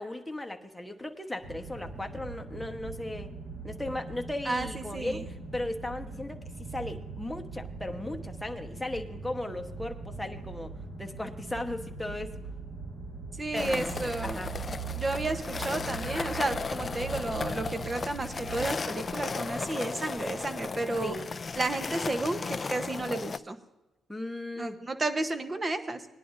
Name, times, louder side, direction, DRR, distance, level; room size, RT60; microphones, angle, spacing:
voice 1, 0.0-3.3 3.6-10.7 11.0-12.4 13.5-14.5 21.0-21.3 24.1-24.8, left 1 dB, 5° left, 4 dB, 1.1 m, -36 dB
sound 1, 1.4-18.7, right 4 dB, 70° right, 3.4 m, -41 dB
voice 2, 4.5-5.3 13.4-14.4 14.9-21.1 21.6-23.6 24.6-26.1, right 2 dB, 25° right, 9 dB, 1.0 m, -32 dB
sound 2, 13.5-23.4, left 4 dB, 35° left, 0.4 m, -35 dB
19.5 x 10.5 x 2.7 m, 1.1 s
cardioid pair, 90°, 0 cm